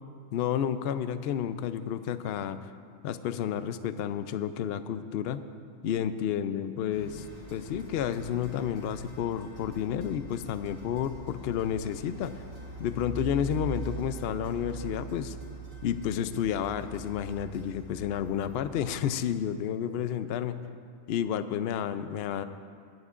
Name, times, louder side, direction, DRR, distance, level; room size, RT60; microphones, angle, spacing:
voice 1, 0.3-2.6 3.0-5.4 5.8-7.2 7.5-12.3 12.8-15.4 15.8-20.7 21.1-22.4, left 9 dB, 65° left, 11 dB, 0.6 m, -31 dB
sound 1, 6.9-19.0, right 3 dB, 70° right, 3.1 m, -43 dB
21.0 x 10.5 x 2.5 m, 2.2 s
omnidirectional pair, 1.4 m